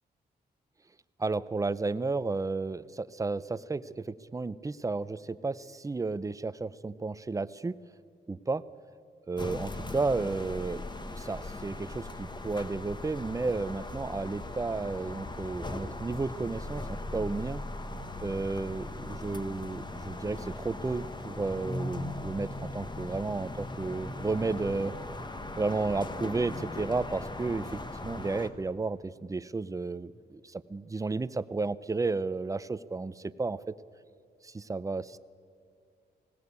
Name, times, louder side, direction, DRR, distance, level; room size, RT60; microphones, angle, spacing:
voice 1, 1.2-7.8 8.3-8.6 9.3-10.8 11.1-17.6 18.2-24.9 25.6-33.7 34.4-35.2, right 3 dB, 20° right, 16 dB, 0.6 m, -32 dB
sound 1, 9.4-28.5, left 2 dB, 25° left, 1.4 m, -39 dB
19.5 x 17.5 x 8.3 m, 2.3 s
cardioid pair, 100°, 18 cm